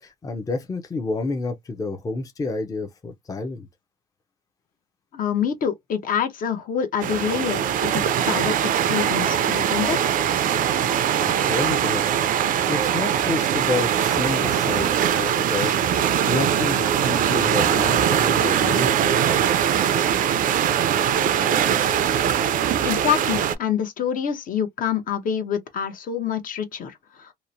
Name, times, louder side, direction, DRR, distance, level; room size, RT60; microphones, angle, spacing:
voice 1, 0.0-3.7 11.2-12.2 12.7-15.7 16.3-19.2, left 3 dB, 20° left, 0.5 m, -29 dB
voice 2, 5.1-10.0 22.8-27.3, left 8 dB, 55° left, 0.8 m, -26 dB
sound 1, 7.0-23.6, right 9 dB, 55° right, 0.4 m, -21 dB
2.9 x 2.0 x 2.5 m
cardioid pair, 110°, 17 cm